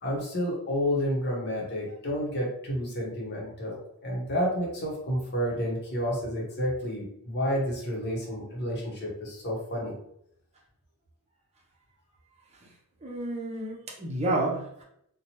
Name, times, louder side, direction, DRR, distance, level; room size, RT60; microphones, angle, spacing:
voice 1, 0.0-9.9, equal, 50° left, -3 dB, 0.8 m, -30 dB
voice 2, 13.0-14.8, right 2 dB, 30° right, -2 dB, 0.7 m, -30 dB
2.8 x 2.1 x 2.9 m, 0.74 s
head